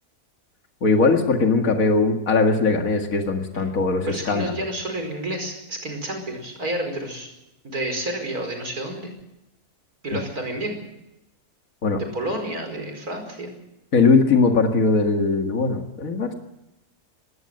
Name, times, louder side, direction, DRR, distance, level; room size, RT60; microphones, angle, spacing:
voice 1, 0.8-4.5 10.1-10.2 11.8-12.0 13.9-16.3, left 4 dB, 65° left, 4 dB, 2.4 m, -20 dB
voice 2, 4.1-7.3 7.6-9.1 10.0-10.8 12.0-13.5, right 1 dB, 85° right, 4 dB, 5.5 m, -30 dB
20.5 x 17.5 x 7.8 m, 0.89 s
omnidirectional pair, 1.5 m